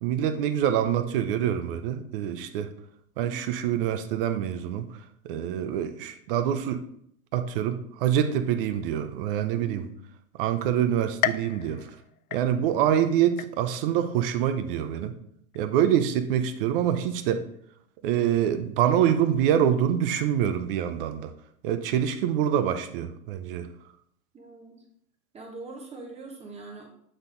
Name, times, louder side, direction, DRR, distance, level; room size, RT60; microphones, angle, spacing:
voice 1, 0.0-2.7 3.2-4.9 5.2-6.8 7.3-9.9 10.4-11.9 12.3-15.1 15.5-17.4 18.0-21.3 21.6-23.7, right 10 dB, 40° right, 10 dB, 0.7 m, -25 dB
voice 2, 9.6-9.9 14.6-14.8 24.3-24.8 25.3-26.9, right 3 dB, 15° right, 1 dB, 1.1 m, -43 dB
sound 1, 11.2-12.9 13.4-14.0 14.5-14.6 15.5-15.6, left 12 dB, 70° left, 0.5 m, -33 dB
8.0 x 4.0 x 3.8 m, 0.69 s
hypercardioid pair, 120°, 44 cm